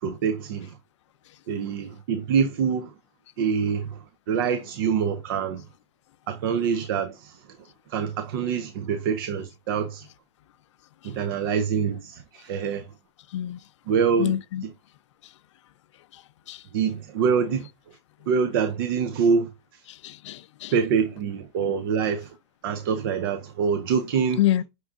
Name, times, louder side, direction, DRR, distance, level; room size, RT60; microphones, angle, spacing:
voice 1, 0.0-0.8 1.5-2.9 3.4-5.6 6.3-7.5 7.9-10.1 11.0-12.9 13.9-14.4 14.6-14.7 16.7-17.7 18.3-19.8 20.7-22.4 22.6-24.4, right 6 dB, 50° right, 0.5 m, -25 dB
voice 2, 14.2-14.6 16.1-16.2 16.5-16.6 19.9-20.7 24.4-24.6, left 13 dB, 80° left, 0.4 m, -26 dB
5.9 x 2.5 x 3.5 m
supercardioid pair, 170°, 15 cm